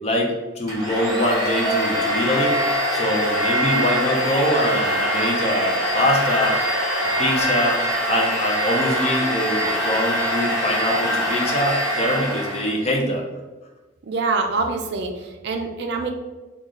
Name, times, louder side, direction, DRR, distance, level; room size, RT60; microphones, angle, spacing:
voice 1, 0.0-2.6 2.9-6.6 7.0-7.8 8.1-13.2, left 1 dB, 30° left, 0 dB, 0.5 m, -23 dB
Domestic sounds home sounds, 0.7-12.8, equal, 15° right, 1.2 m, -23 dB
voice 2, 14.1-16.1, right 3 dB, 55° right, 4 dB, 0.4 m, -25 dB
3.1 x 2.3 x 3.8 m, 1.2 s
head